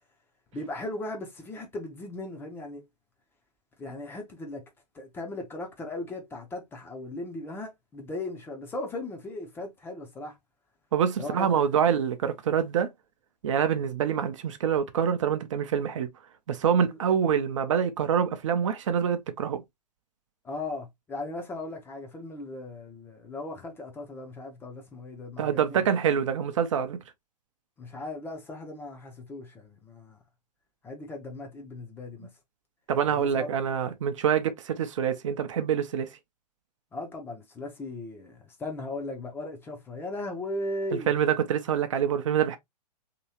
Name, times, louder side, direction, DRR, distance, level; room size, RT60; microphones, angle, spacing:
voice 1, 0.5-2.8 3.8-4.6 4.9-10.4 11.2-11.7 20.4-25.8 27.8-30.2 30.8-32.3 33.1-33.5 36.9-41.1, left 2 dB, 10° left, 0.6 m, -37 dB
voice 2, 10.9-12.9 13.4-16.1 16.5-19.6 25.4-27.0 32.9-36.1 41.1-42.6, right 8 dB, 50° right, 0.6 m, -26 dB
3.0 x 2.9 x 2.8 m
figure-of-eight pair, 110°, 21 cm